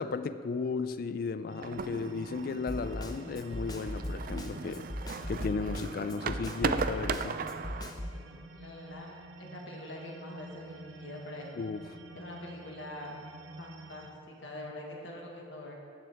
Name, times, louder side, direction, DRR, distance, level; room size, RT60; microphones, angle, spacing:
voice 1, 0.0-4.9 5.3-7.4 11.5-12.0, left 4 dB, 50° left, 12 dB, 0.3 m, -35 dB
sound 1, 1.5-14.1, right 2 dB, 90° right, 0.7 m, -49 dB
sound 2, 1.6-7.9, right 5 dB, 50° right, 0.4 m, -37 dB
Snare drum, 2.7-8.2, left 1 dB, 20° left, 0.6 m, -38 dB
voice 2, 8.1-11.5 12.1-13.2 13.6-15.8, left 1 dB, 80° left, -1 dB, 1.6 m, -44 dB
13.5 x 7.4 x 3.4 m, 2.5 s
head